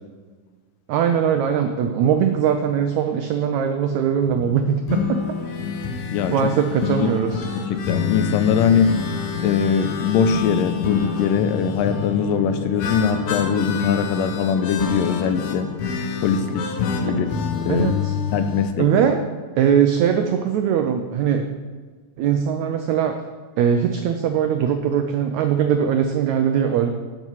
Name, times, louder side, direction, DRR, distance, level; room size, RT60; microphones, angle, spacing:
voice 1, 0.9-5.2 6.3-7.4 17.7-18.2 18.8-19.2 19.6-21.4 22.2-23.2 23.6-26.9, right 8 dB, 85° right, 6 dB, 1.6 m, -20 dB
sound 1, 4.3-18.7, left 6 dB, 65° left, 2.1 m, -27 dB
voice 2, 6.1-6.5 7.0-7.1 7.7-8.9 9.4-15.7 16.2-16.7 17.0-17.3 17.7-17.9 18.3-18.9, left 7 dB, 80° left, 9 dB, 2.3 m, -21 dB
12.0 x 8.1 x 5.7 m, 1.5 s
omnidirectional pair, 4.1 m